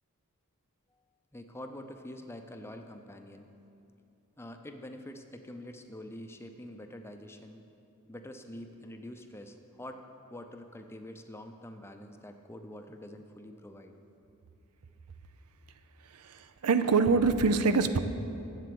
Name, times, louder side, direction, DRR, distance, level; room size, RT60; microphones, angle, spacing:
voice 1, 1.3-3.5 4.4-7.6 8.1-10.0 10.3-13.9, left 1 dB, 10° left, 6 dB, 0.5 m, -46 dB
voice 2, 16.1-18.0, right 4 dB, 90° right, 11 dB, 0.6 m, -25 dB
7.7 x 7.5 x 8.5 m, 2.7 s
head